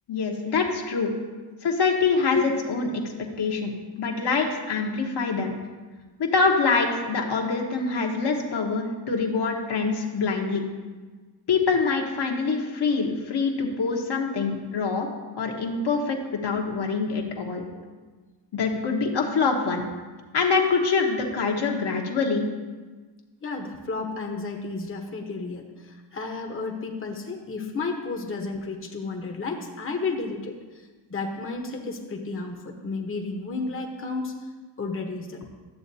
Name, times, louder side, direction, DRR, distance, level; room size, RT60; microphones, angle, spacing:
voice 1, 0.1-1.1 1.6-5.5 6.2-10.6 11.5-15.1 15.4-16.2 16.4-17.6 18.5-19.8 20.3-22.5, left 4 dB, 60° left, 0 dB, 1.2 m, -25 dB
voice 2, 23.4-34.3 34.8-35.5, left 4 dB, 30° left, 2 dB, 1.0 m, -32 dB
12.0 x 7.1 x 2.7 m, 1.4 s
cardioid pair, 75°, 45 cm